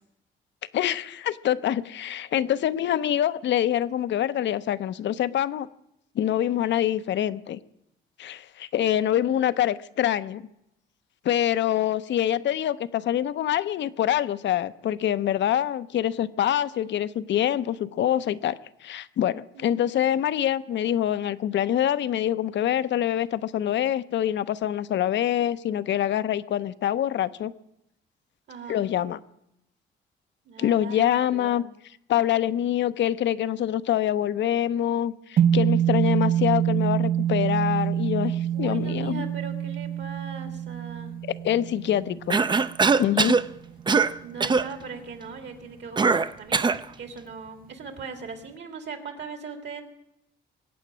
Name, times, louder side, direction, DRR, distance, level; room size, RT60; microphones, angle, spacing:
voice 1, 0.7-5.7 6.2-7.6 8.2-10.4 11.2-27.5 28.7-29.2 30.6-31.6 32.1-39.3 41.4-42.4 43.0-43.4, left 11 dB, 65° left, 0.7 m, -25 dB
voice 2, 28.5-28.8 30.5-31.6 38.5-41.2 44.2-49.8, right 5 dB, 65° right, 2.6 m, -40 dB
sound 1, 35.4-43.8, right 10 dB, 45° right, 0.9 m, -26 dB
Cough, 42.3-43.5 43.9-44.1 44.4-44.7 46.0-46.8, right 4 dB, 20° right, 0.5 m, -21 dB
23.0 x 8.6 x 6.2 m
cardioid pair, 90°, 20 cm